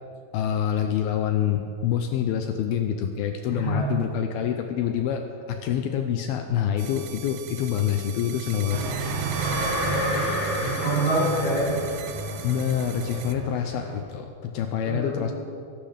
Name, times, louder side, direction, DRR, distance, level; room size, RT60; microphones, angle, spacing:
voice 1, 0.3-9.0 9.2-9.5 10.1-10.3 12.4-15.3, left 9 dB, 80° left, 5 dB, 2.3 m, -26 dB
voice 2, 3.5-3.9 10.4-11.8 14.9-15.3, right 1 dB, 65° left, -7 dB, 5.1 m, -26 dB
sound 1, 6.8-13.3, right 12 dB, 85° right, 2.7 m, -39 dB
sound 2, 8.7-14.0, right 3 dB, 60° right, 2.1 m, -32 dB
sound 3, 9.3-12.4, left 1 dB, 40° left, 3.5 m, -30 dB
21.5 x 12.0 x 3.5 m, 2.4 s
omnidirectional pair, 4.8 m